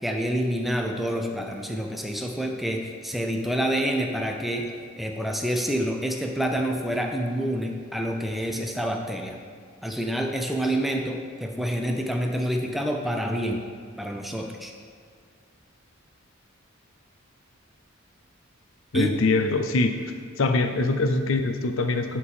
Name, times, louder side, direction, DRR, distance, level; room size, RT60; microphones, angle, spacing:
voice 1, 0.0-4.7 5.0-9.4 9.8-13.7 14.0-14.7 18.9-19.2, equal, ahead, 2 dB, 0.5 m, -27 dB
voice 2, 18.9-19.9 20.4-22.2, left 3 dB, 75° left, 7 dB, 0.6 m, -23 dB
11.0 x 4.4 x 3.6 m, 2.1 s
head